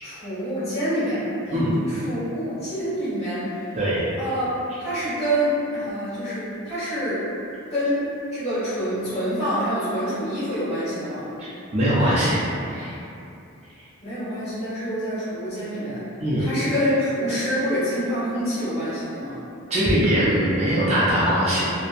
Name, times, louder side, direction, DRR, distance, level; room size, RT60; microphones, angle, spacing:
voice 1, 0.0-3.6 4.2-7.2 7.7-11.3 14.0-16.0 16.4-19.4, equal, 30° left, -13 dB, 1.1 m, -26 dB
voice 2, 11.7-12.4 12.7-12.9 16.2-16.5 19.7-21.7, equal, 30° right, -10 dB, 0.3 m, -21 dB
2.8 x 2.0 x 2.3 m, 2.7 s
head